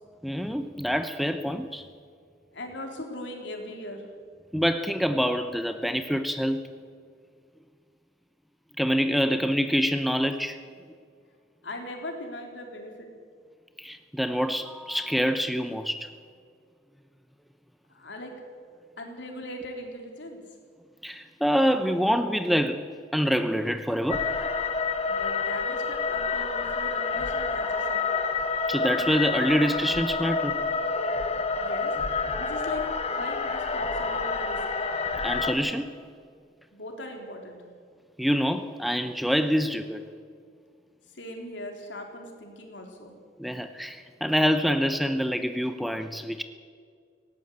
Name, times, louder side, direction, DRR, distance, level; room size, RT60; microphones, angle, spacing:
voice 1, 0.2-1.8 4.5-6.6 8.8-10.6 13.8-16.1 21.0-22.9 23.1-24.3 28.7-30.6 35.2-35.9 38.2-40.0 43.4-46.4, equal, ahead, 0.8 m, -26 dB
voice 2, 2.5-4.1 11.6-13.1 17.9-18.3 19.0-20.4 25.1-28.0 31.5-31.9 32.3-32.8 33.1-34.6 36.7-37.6 41.1-43.1, left 1 dB, 80° left, 3.7 m, -39 dB
sound 1, 24.1-35.5, left 4 dB, 35° left, 1.5 m, -28 dB
19.0 x 17.0 x 8.2 m
head